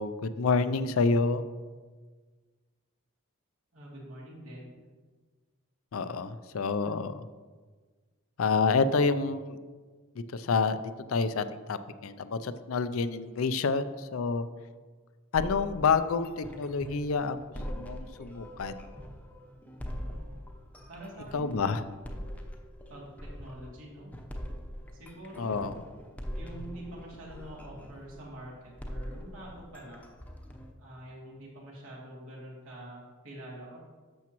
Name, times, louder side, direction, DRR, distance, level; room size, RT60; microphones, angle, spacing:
voice 1, 0.0-1.4 5.9-7.3 8.4-9.6 10.3-10.8 11.1-14.5 15.3-18.7 21.3-21.8 25.4-25.7, left 4 dB, 85° left, 12 dB, 0.5 m, -28 dB
voice 2, 3.7-4.8 19.9-20.4 20.9-21.6 22.1-22.2 22.9-24.1 24.9-25.8 26.3-30.0 30.8-33.8, right 1 dB, 80° right, -4 dB, 2.8 m, -46 dB
sound 1, 15.3-30.7, equal, 10° left, 0.8 m, -42 dB
11.5 x 7.2 x 3.0 m, 1.4 s
head